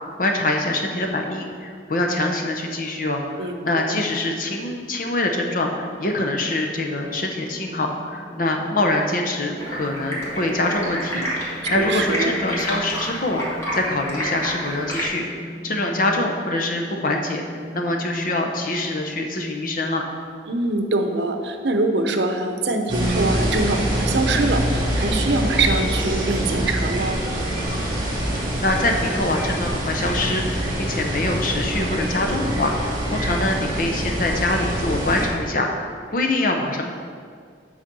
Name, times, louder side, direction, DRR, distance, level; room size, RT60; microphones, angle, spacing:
voice 1, 0.2-15.2 15.6-20.0 28.6-36.8, left 2 dB, 50° left, 2 dB, 0.8 m, -24 dB
voice 2, 3.4-3.9 11.7-12.3 20.5-27.2, right 2 dB, 70° right, 5 dB, 0.7 m, -23 dB
sound 1, 7.3-19.1, right 1 dB, 75° left, 1.3 m, -40 dB
Stream, 9.6-15.1, equal, 15° left, 1.7 m, -29 dB
sound 2, 22.9-35.3, right 1 dB, 25° right, 1.9 m, -25 dB
8.8 x 4.2 x 6.1 m, 2.1 s
head